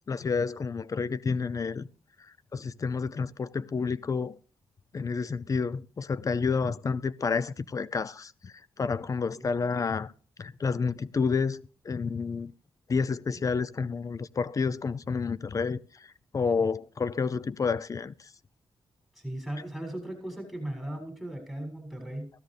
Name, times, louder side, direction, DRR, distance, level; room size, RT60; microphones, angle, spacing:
voice 1, 0.1-1.9 2.5-4.4 4.9-10.1 10.4-12.5 12.9-16.1 16.3-18.1, left 5 dB, 35° left, 0.6 m, -30 dB
voice 2, 19.1-22.3, right 1 dB, 5° left, 7.0 m, -37 dB
16.5 x 13.0 x 3.4 m
cardioid pair, 95°, 9 cm